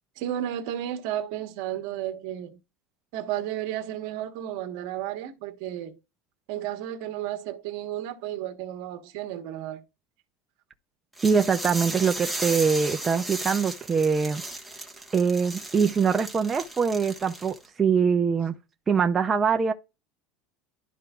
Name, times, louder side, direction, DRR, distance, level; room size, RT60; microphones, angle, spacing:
voice 1, 0.2-2.6 3.1-6.0 6.5-9.8, right 11 dB, 70° right, 1.4 m, -33 dB
sound 1, 11.2-17.7, right 2 dB, ahead, 1.6 m, -35 dB
voice 2, 11.2-14.4 15.1-18.6 18.9-19.7, right 6 dB, 20° right, 0.7 m, -23 dB
12.5 x 4.5 x 2.5 m
supercardioid pair, 140°, 0 cm